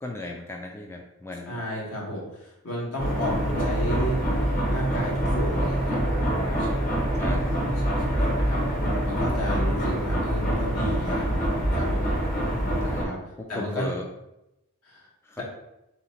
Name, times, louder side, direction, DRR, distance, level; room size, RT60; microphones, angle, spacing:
voice 1, 0.0-1.6 7.1-7.5 12.8-13.1 13.5-14.0 15.2-15.4, left 2 dB, 10° left, 1 dB, 0.3 m, -36 dB
voice 2, 1.4-6.8 7.7-12.0 13.0-13.2 13.5-13.9 14.8-15.1, equal, 70° left, -3 dB, 1.4 m, -33 dB
sound 1, 3.0-13.0, equal, 40° left, 1.0 m, -25 dB
3.4 x 2.9 x 4.2 m, 0.88 s
head